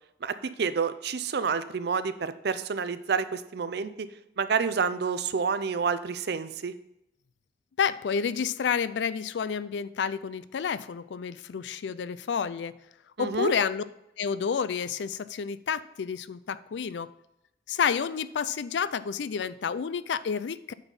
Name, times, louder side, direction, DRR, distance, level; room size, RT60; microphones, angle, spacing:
voice 1, 0.2-4.1 4.4-6.7 13.2-13.5, right 5 dB, 65° right, 12 dB, 0.5 m, -29 dB
voice 2, 7.8-12.8 13.2-13.8 14.2-17.1 17.7-20.7, left 6 dB, 75° left, 16 dB, 0.4 m, -30 dB
8.9 x 4.2 x 5.4 m, 0.83 s
head